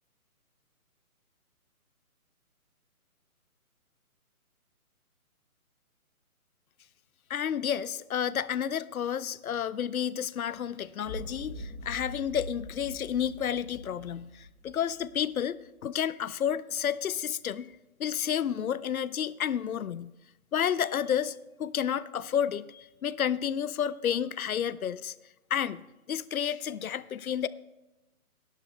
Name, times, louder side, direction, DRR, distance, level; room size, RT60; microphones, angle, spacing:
voice 1, 7.3-17.7 18.0-20.1 20.5-25.1 25.5-25.8 26.1-27.5, left 9 dB, 70° left, 17 dB, 0.6 m, -31 dB
sound 1, 11.1-15.4, left 1 dB, 15° left, 2.7 m, -43 dB
19.0 x 11.5 x 2.2 m, 1.0 s
hypercardioid pair, 165°, 44 cm